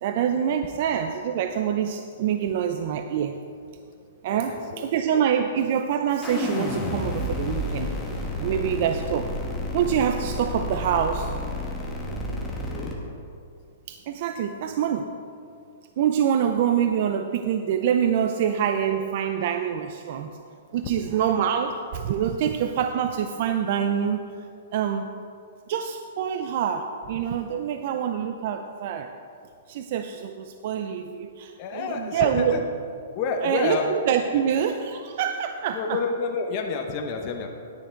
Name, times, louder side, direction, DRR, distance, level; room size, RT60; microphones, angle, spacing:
voice 1, 0.0-3.4 4.2-7.9 8.4-9.2 9.7-11.3 13.9-15.1 16.0-20.3 20.7-24.2 24.7-25.1 25.7-29.1 29.7-32.6 33.4-36.0, right 8 dB, 45° right, 7 dB, 0.4 m, -25 dB
voice 2, 4.3-5.0 8.5-8.6 12.7-12.9 31.6-32.6 33.1-33.9 35.7-37.5, left 5 dB, 30° left, 2 dB, 0.8 m, -29 dB
sound 1, 6.2-12.9, left 1 dB, 10° left, 1.2 m, -30 dB
10.0 x 9.7 x 4.5 m, 2.5 s
hypercardioid pair, 160°, 0 cm